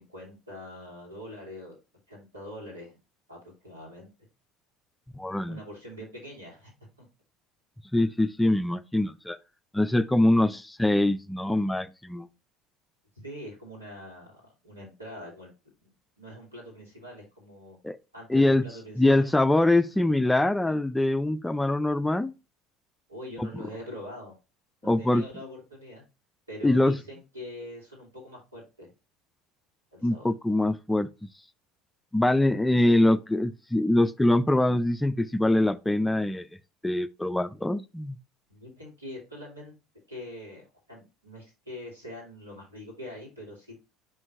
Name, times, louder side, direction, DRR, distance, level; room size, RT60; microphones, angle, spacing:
voice 1, 0.0-1.8 2.1-3.0 3.3-4.1 5.5-6.7 7.0-7.1 13.1-15.5 15.8-17.8 18.1-19.8 23.1-24.3 24.8-26.0 26.5-28.9 29.9-30.3 32.9-33.0 38.5-39.7 40.1-43.8, left 1 dB, 90° right, 2.9 m, -43 dB
voice 2, 5.1-5.6 7.9-9.4 9.7-12.3 17.8-18.0 18.3-18.6 19.0-22.3 23.4-23.5 24.8-25.2 26.6-27.0 30.0-31.1 32.1-36.5 36.8-38.1, left 1 dB, 10° left, 0.5 m, -23 dB
10.5 x 3.8 x 2.6 m
figure-of-eight pair, 65°, 0 cm